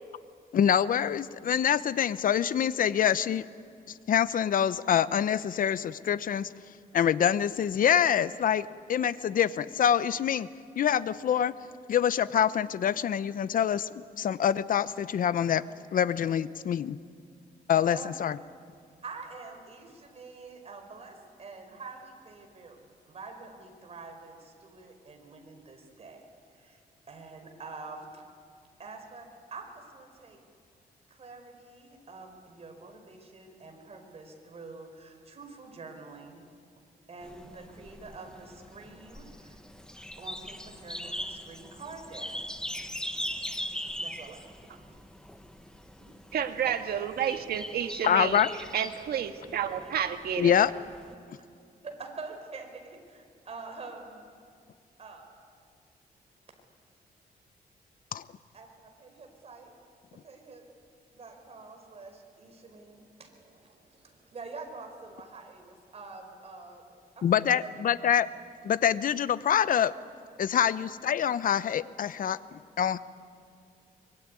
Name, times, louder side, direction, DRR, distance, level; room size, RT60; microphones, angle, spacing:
voice 1, 0.5-3.4 4.1-6.5 6.9-10.5 10.8-11.5 11.9-15.6 15.9-17.0 17.7-18.4 48.0-48.5 50.4-50.7 58.1-58.2 67.2-68.3 68.6-69.9 70.4-73.0, left 9 dB, 60° left, 16 dB, 0.8 m, -25 dB
voice 2, 19.0-26.2 26.5-26.8 27.1-28.2 28.8-30.4 31.1-36.4 37.1-39.6 40.2-42.6 44.0-44.4 46.0-46.1 46.6-46.7 51.3-51.4 51.8-54.3 55.0-55.3 58.5-59.7 60.1-60.6 61.1-66.8 67.1-67.7, right 3 dB, 40° right, 4 dB, 4.8 m, -46 dB
sound 1, 37.2-51.1, equal, 5° left, 1.4 m, -41 dB
voice 3, 46.3-48.4 48.7-50.5, right 9 dB, 85° right, 7 dB, 1.8 m, -30 dB
24.0 x 23.0 x 9.8 m, 2.3 s
cardioid pair, 115°, 16 cm